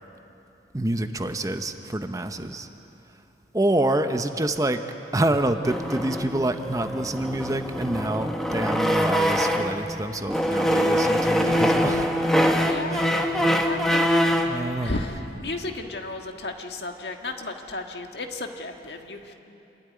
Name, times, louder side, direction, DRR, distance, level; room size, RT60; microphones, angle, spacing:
voice 1, 0.7-2.7 3.5-4.8 5.1-12.1 12.9-13.5 14.4-15.0, right 1 dB, 20° right, 7 dB, 0.8 m, -27 dB
sound 1, 5.6-9.8 10.3-14.6, equal, 5° left, 1.2 m, -23 dB
voice 2, 12.6-19.3, left 2 dB, 70° left, 4 dB, 1.6 m, -34 dB
27.5 x 13.0 x 9.7 m, 2.9 s
head